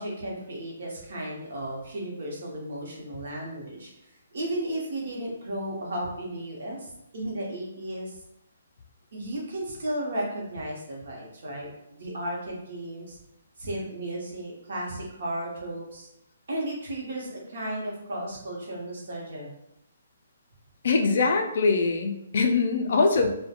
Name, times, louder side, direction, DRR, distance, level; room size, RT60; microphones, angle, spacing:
voice 1, 0.0-8.2 9.1-11.7 12.0-13.2 13.6-16.1 16.5-19.5, right 1 dB, 60° right, -3 dB, 0.8 m, -34 dB
voice 2, 20.8-23.3, left 4 dB, 55° left, 4 dB, 0.3 m, -23 dB
2.3 x 2.1 x 2.8 m, 0.83 s
hypercardioid pair, 170°, 0 cm